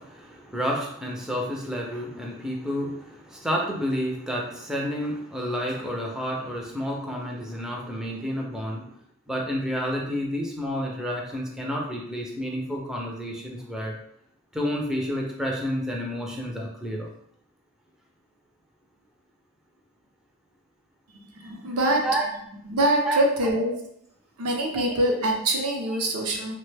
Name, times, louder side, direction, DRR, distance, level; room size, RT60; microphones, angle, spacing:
voice 1, 0.0-8.9 9.3-13.9 14.5-17.1 22.0-22.3 23.0-23.2 24.7-25.0 25.9-26.0, equal, 5° right, -2 dB, 0.4 m, -30 dB
voice 2, 21.4-22.1 22.7-23.7 24.4-26.5, right 1 dB, 75° right, 0 dB, 0.6 m, -24 dB
3.0 x 2.1 x 3.2 m, 0.72 s
head